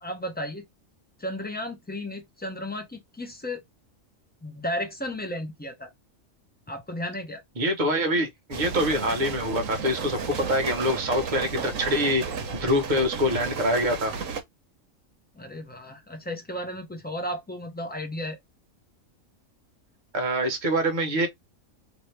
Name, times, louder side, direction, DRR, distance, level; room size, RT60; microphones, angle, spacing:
voice 1, 0.0-0.6 1.2-3.6 4.4-5.9 6.7-7.4 15.3-18.4, left 1 dB, 10° left, 0.5 m, -34 dB
voice 2, 7.6-14.1 20.1-21.3, equal, 40° right, 1.0 m, -25 dB
sound 1, 8.5-14.4, right 5 dB, 80° right, 1.1 m, -33 dB
2.9 x 2.7 x 3.2 m
omnidirectional pair, 1.4 m